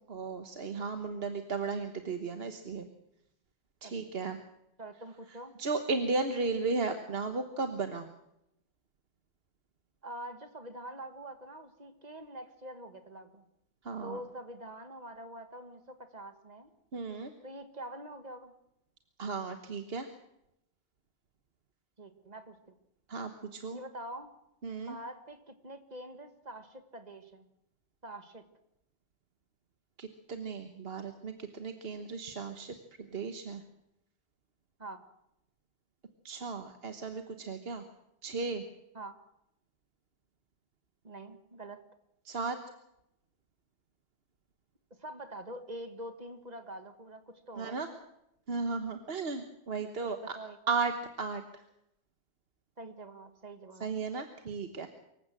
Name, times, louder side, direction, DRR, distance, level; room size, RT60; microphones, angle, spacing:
voice 1, 0.1-2.9 3.8-4.4 5.6-8.1 13.8-14.2 16.9-17.3 19.2-20.1 23.1-23.8 24.6-24.9 30.0-32.7 33.1-33.6 36.2-37.9 38.2-38.6 42.2-42.6 47.6-47.9 48.5-50.3 50.7-50.9 51.2-51.6 53.8-54.9, right 4 dB, 60° right, 7 dB, 1.5 m, -35 dB
voice 2, 4.8-5.5 10.0-13.5 14.0-16.7 17.4-18.5 22.0-22.7 23.7-24.3 24.8-27.5 28.0-28.5 34.8-35.0 38.9-39.2 41.0-41.8 45.0-48.0 50.0-50.6 52.8-53.9, right 1 dB, 40° right, 9 dB, 1.7 m, -45 dB
25.0 x 15.0 x 7.6 m, 0.83 s
omnidirectional pair, 1.1 m